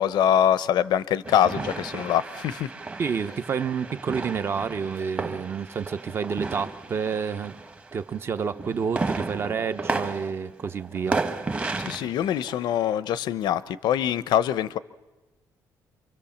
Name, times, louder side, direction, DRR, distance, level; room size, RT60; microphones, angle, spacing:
voice 1, 0.0-2.7 11.8-14.8, left 10 dB, 90° left, 0.8 m, -24 dB
sound 1, 1.2-8.0 8.4-12.7, right 3 dB, 20° right, 1.2 m, -33 dB
voice 2, 3.0-7.5 7.9-11.2, right 6 dB, 35° right, 0.8 m, -29 dB
27.5 x 24.5 x 7.2 m
cardioid pair, 170°, 7 cm